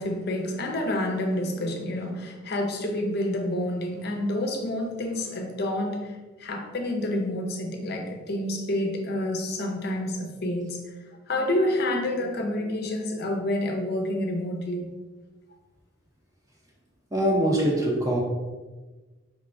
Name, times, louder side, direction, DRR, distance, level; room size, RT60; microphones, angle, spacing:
voice 1, 0.0-6.1 6.4-10.8 11.3-14.9, left 1 dB, 50° left, 3 dB, 0.6 m, -28 dB
voice 2, 17.1-18.2, right 1 dB, 15° right, -2 dB, 0.7 m, -23 dB
4.7 x 3.2 x 2.6 m, 1.3 s
head